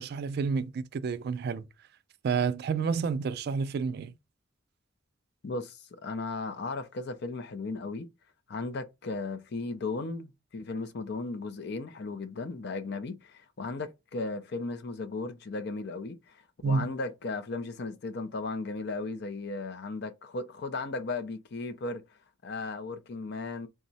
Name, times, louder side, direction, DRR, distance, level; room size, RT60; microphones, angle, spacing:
voice 1, 0.0-1.6 2.2-4.1 16.6-16.9, right 5 dB, 55° right, 0.3 m, -29 dB
voice 2, 5.4-8.1 8.5-22.0 22.4-23.7, left 3 dB, 60° left, 0.5 m, -36 dB
3.5 x 2.0 x 4.0 m
head